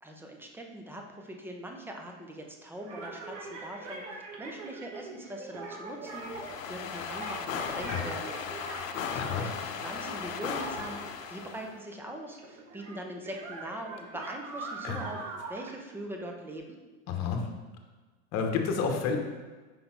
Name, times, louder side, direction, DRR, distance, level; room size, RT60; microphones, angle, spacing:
voice 1, 0.0-8.3 9.0-15.2 15.5-16.8, right 1 dB, 5° right, 2 dB, 0.6 m, -42 dB
sound 1, 2.8-12.0 12.3-16.5, right 3 dB, 75° right, 1.3 m, -43 dB
sound 2, 6.0-11.7, left 6 dB, 85° left, 0.7 m, -37 dB
voice 2, 17.1-17.4 18.3-19.2, left 6 dB, 40° left, 4 dB, 1.1 m, -29 dB
5.4 x 3.9 x 4.4 m, 1.3 s
supercardioid pair, 125°, 38 cm